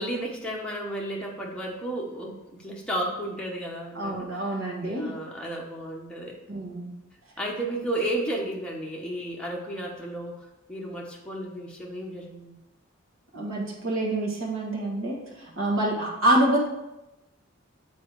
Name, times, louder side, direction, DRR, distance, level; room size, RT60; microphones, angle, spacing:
voice 1, 0.0-6.4 7.4-10.4 10.7-12.5, right 1 dB, 5° left, -3 dB, 1.2 m, -33 dB
voice 2, 3.9-5.1 6.5-6.9 13.3-16.6, right 1 dB, 85° right, -3 dB, 1.5 m, -26 dB
7.4 x 4.2 x 4.8 m, 0.94 s
head